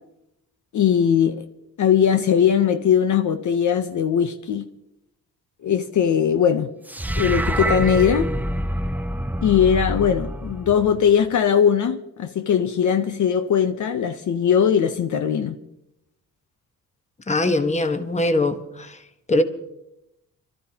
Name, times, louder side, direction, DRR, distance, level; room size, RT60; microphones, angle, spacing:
voice 1, 0.7-1.4 1.8-4.7 5.6-6.7 7.2-8.3 9.4-15.6, left 8 dB, 60° left, 0.8 m, -20 dB
sound 1, 6.9-11.3, right 1 dB, 5° right, 0.4 m, -26 dB
voice 2, 17.3-19.0 19.3-19.4, left 2 dB, 20° left, 1.2 m, -21 dB
28.5 x 13.0 x 2.9 m
cardioid pair, 100°, 34 cm